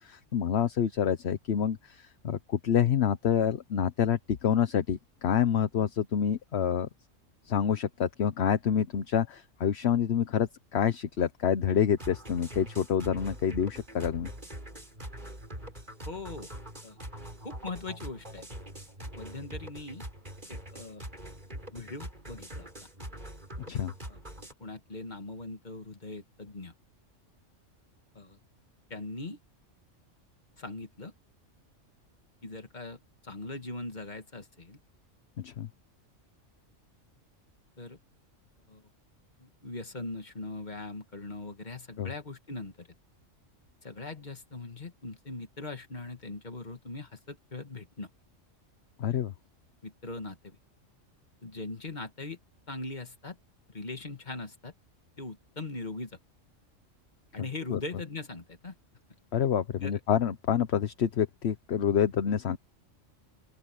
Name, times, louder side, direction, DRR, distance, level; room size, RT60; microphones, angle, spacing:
voice 1, 0.0-6.9 7.5-14.3 23.7-23.9 35.4-35.7 42.0-42.1 49.0-49.3 57.7-57.8 59.3-62.6, left 8 dB, 60° left, 1.1 m, -27 dB
sound 1, 12.0-24.5, right 1 dB, 35° right, 6.8 m, -43 dB
voice 2, 16.1-16.5 16.8-17.0 17.4-18.5 19.2-20.0 20.5-21.0 21.7-22.7 24.1-24.2 24.6-26.7 28.1-28.4 28.9-29.4 30.6-31.1 32.4-34.8 37.8-38.0 38.7-38.8 39.4-42.9 43.8-48.1 49.8-50.6 51.4-52.4 52.7-53.4 53.7-54.7 55.2-56.2 57.3-58.8 59.8-60.0, left 3 dB, 35° left, 2.1 m, -40 dB
open air
omnidirectional pair, 1.3 m